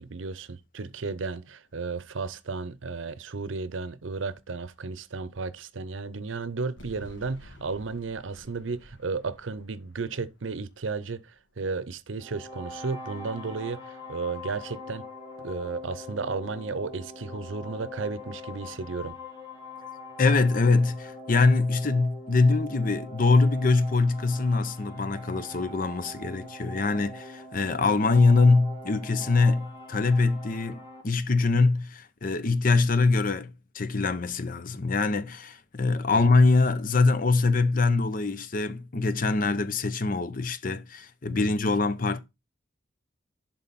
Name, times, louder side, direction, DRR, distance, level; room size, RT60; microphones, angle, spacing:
voice 1, 0.0-15.0 15.4-19.2 36.1-36.2 41.3-41.5, right 4 dB, 85° right, 0.7 m, -34 dB
sound 1, 6.8-11.9, left 1 dB, 80° left, 1.6 m, -52 dB
sound 2, 12.2-31.0, left 1 dB, 25° left, 2.1 m, -43 dB
voice 2, 20.2-42.2, left 3 dB, 45° left, 0.7 m, -23 dB
11.0 x 3.9 x 4.1 m
head